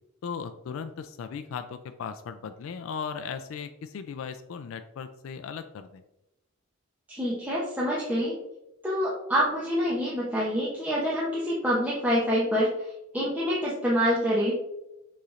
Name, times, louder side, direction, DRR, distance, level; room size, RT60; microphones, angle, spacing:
voice 1, 0.2-6.0, left 6 dB, 70° left, 9 dB, 0.3 m, -37 dB
voice 2, 7.1-8.4 8.8-12.7 13.1-14.6, equal, 10° right, -7 dB, 0.7 m, -26 dB
6.6 x 3.1 x 2.5 m, 0.90 s
head